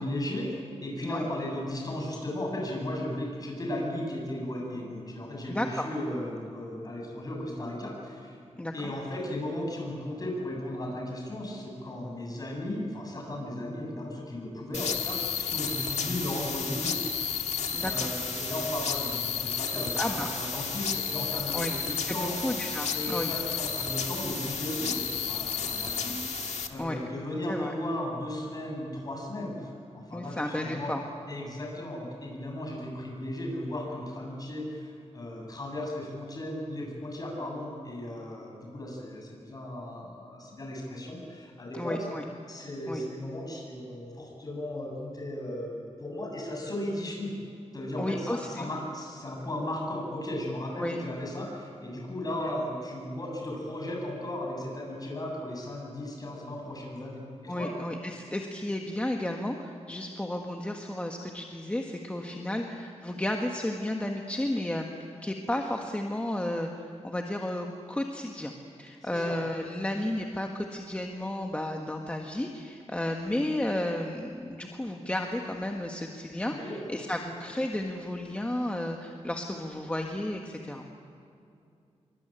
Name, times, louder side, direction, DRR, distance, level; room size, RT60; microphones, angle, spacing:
voice 1, 0.0-8.4 8.7-17.4 17.8-22.4 22.9-30.9 31.3-42.0 42.5-47.3 47.7-57.7 62.3-62.4 69.1-69.4 76.5-76.9, left 1 dB, 35° left, 0 dB, 7.9 m, -36 dB
voice 2, 5.5-5.9 8.6-8.9 17.7-18.1 20.0-20.3 21.5-21.7 22.0-23.3 26.8-27.0 27.5-27.7 30.1-31.0 41.7-42.2 42.9-43.0 48.0-48.7 50.8-51.0 57.5-64.9 65.2-68.5 68.8-80.8, left 1 dB, 10° left, 2 dB, 1.6 m, -33 dB
sound 1, 14.7-26.7, left 6 dB, 85° left, 1.7 m, -32 dB
26.5 x 24.0 x 9.0 m, 2.5 s
wide cardioid pair, 135°, 11 cm